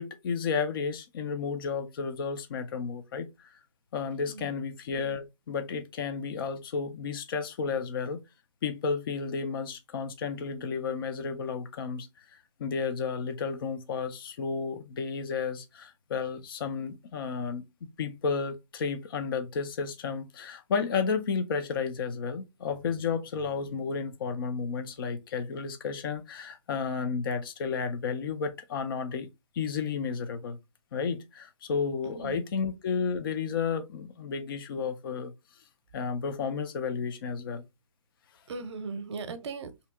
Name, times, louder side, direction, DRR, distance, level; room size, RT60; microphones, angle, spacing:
voice 1, 0.0-3.5 3.9-8.2 8.6-12.1 12.6-17.6 18.0-29.3 29.5-30.6 30.9-35.3 35.9-37.6, left 5 dB, 40° left, 0.5 m, -32 dB
voice 2, 32.1-32.4 38.5-39.9, right 4 dB, 55° right, 0.7 m, -38 dB
2.8 x 2.7 x 3.4 m
hypercardioid pair, 155°, 17 cm